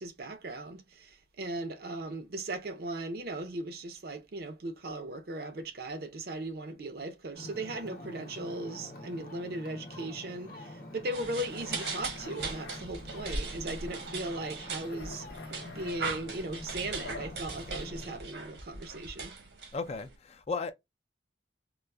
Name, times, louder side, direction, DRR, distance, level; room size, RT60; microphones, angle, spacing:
voice 1, 0.0-19.3, right 1 dB, 55° right, 0.6 m, -38 dB
Ocean, 7.3-18.2, left 1 dB, 50° left, 0.9 m, -46 dB
sound 1, 11.1-20.1, right 4 dB, 75° right, 1.1 m, -39 dB
sound 2, 11.5-12.8 13.2-14.1 14.4-17.3, left 4 dB, 85° left, 0.7 m, -48 dB
voice 2, 19.7-20.7, left 4 dB, 35° left, 0.4 m, -35 dB
3.9 x 2.4 x 2.2 m
head